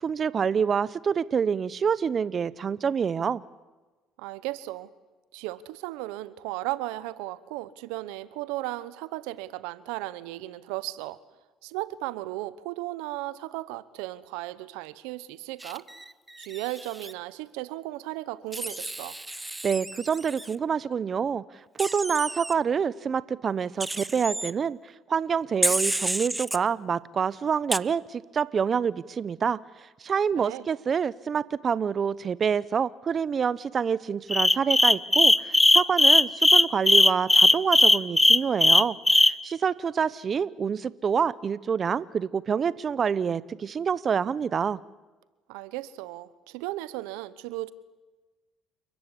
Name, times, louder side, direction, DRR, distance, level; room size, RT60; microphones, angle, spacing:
voice 1, 0.0-3.4 19.6-21.4 21.8-24.8 25.1-29.6 30.0-44.8, right 6 dB, 40° right, 19 dB, 0.8 m, -27 dB
voice 2, 4.2-4.9 5.3-11.2 11.6-15.9 16.4-19.2 30.4-30.7 45.5-47.7, right 17 dB, 90° right, 17 dB, 1.0 m, -35 dB
Wild animals, 15.6-17.1 18.5-20.5 21.8-22.5 23.8-24.5 25.6-26.6 27.7-27.8, right 2 dB, 10° right, 0.7 m, -31 dB
sound 1, 34.3-39.3, left 2 dB, 10° left, 1.0 m, -17 dB
29.0 x 14.5 x 10.0 m, 1.2 s
supercardioid pair, 80°, 0 cm